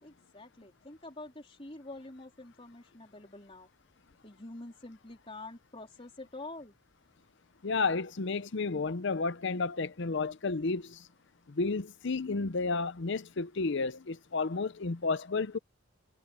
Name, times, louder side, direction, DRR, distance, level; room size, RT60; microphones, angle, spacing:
voice 1, 0.0-3.7 4.2-6.7, left 2 dB, 25° left, 3.8 m, -47 dB
voice 2, 7.6-11.1 11.5-15.6, left 4 dB, 55° left, 0.7 m, -32 dB
head